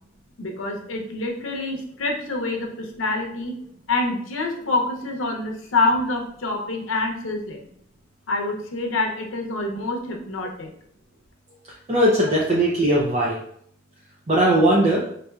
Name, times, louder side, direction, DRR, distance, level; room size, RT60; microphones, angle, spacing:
voice 1, 0.4-7.7 8.3-10.7, left 2 dB, 85° left, 2 dB, 0.6 m, -26 dB
voice 2, 11.9-13.4 14.3-15.0, right 1 dB, 35° right, -4 dB, 0.5 m, -19 dB
4.1 x 2.6 x 2.3 m, 0.67 s
head